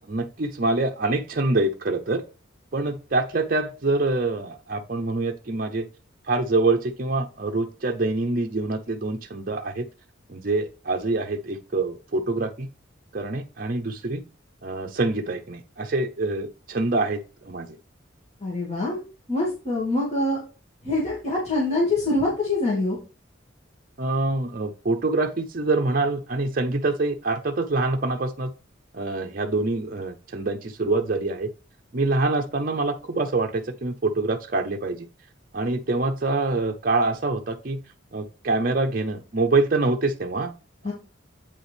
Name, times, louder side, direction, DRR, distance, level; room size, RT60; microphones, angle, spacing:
voice 1, 0.1-2.2 2.7-5.9 6.3-9.9 10.3-12.7 13.1-14.2 14.6-17.7 24.0-28.5 28.9-31.5 31.9-35.1 35.5-37.8 38.1-40.5, right 2 dB, 45° right, 3 dB, 0.6 m, -25 dB
voice 2, 18.4-19.0 19.3-20.4 20.8-23.0 40.8-40.9, left 2 dB, 35° left, -5 dB, 2.5 m, -24 dB
8.5 x 5.3 x 3.4 m, 0.34 s
head